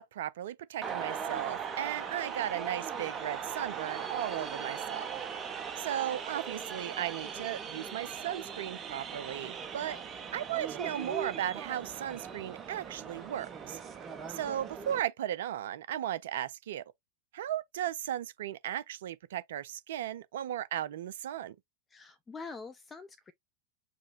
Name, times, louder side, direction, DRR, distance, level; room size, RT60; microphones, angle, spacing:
voice 1, 0.0-5.1 5.8-10.0 10.3-13.8 14.3-16.8 17.3-21.6, right 11 dB, 55° right, 0.4 m, -36 dB
sound 1, 0.8-15.0, right 7 dB, 25° right, 0.8 m, -39 dB
voice 2, 21.9-23.3, left 4 dB, 15° left, 0.4 m, -45 dB
4.8 x 2.0 x 4.0 m
figure-of-eight pair, 90°, 0 cm